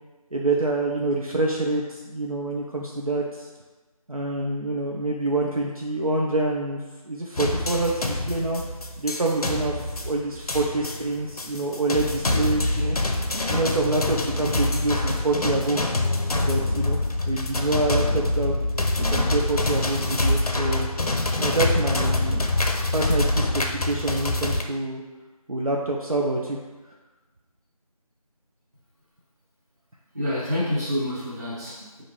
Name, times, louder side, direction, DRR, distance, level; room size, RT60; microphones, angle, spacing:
voice 1, 0.3-3.5 4.1-6.8 7.0-8.6 9.0-13.0 13.5-15.9 16.4-17.0 17.3-18.5 19.1-20.9 21.4-22.6 22.9-25.0 25.5-26.6, right 2 dB, 65° right, -2 dB, 0.6 m, -26 dB
sound 1, 7.4-24.6, left 2 dB, 70° left, 0.5 m, -25 dB
voice 2, 30.1-32.0, left 1 dB, 25° right, -11 dB, 1.4 m, -28 dB
5.5 x 2.5 x 3.0 m, 1.2 s
figure-of-eight pair, 175°, 20 cm